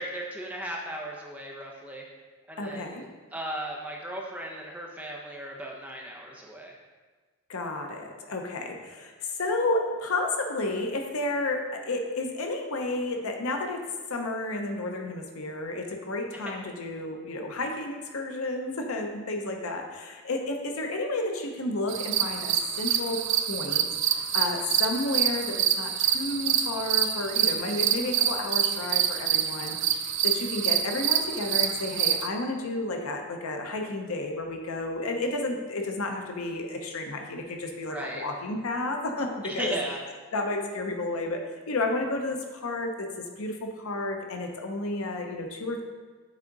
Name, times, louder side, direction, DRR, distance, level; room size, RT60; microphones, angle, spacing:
voice 1, 0.0-2.0 2.5-3.0 3.3-6.7 37.9-38.2 39.4-40.0, right 1 dB, 5° right, -2 dB, 0.6 m, -36 dB
voice 2, 2.6-3.1 7.5-13.8 14.1-39.8 40.3-41.4 41.7-45.8, left 2 dB, 80° left, 3 dB, 0.7 m, -31 dB
sound 1, 21.9-32.3, right 10 dB, 55° right, 0.3 m, -26 dB
7.4 x 3.6 x 3.9 m, 1.4 s
head